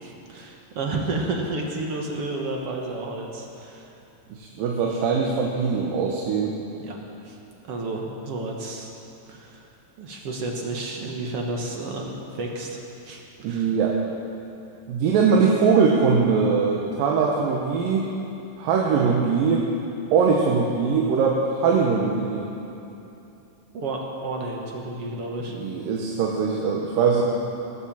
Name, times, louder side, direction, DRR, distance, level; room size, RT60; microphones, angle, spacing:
voice 1, 0.0-3.9 6.7-7.0 7.2-7.4 7.7-8.9 9.3-9.7 10.0-13.7 23.7-25.6, right 2 dB, 60° right, 0 dB, 1.8 m, -31 dB
voice 2, 4.4-6.5 13.4-14.0 14.9-18.1 18.6-19.7 20.1-22.4 25.6-27.2, right 5 dB, 85° right, -1 dB, 2.8 m, -21 dB
19.5 x 8.8 x 7.4 m, 2.9 s
omnidirectional pair, 3.9 m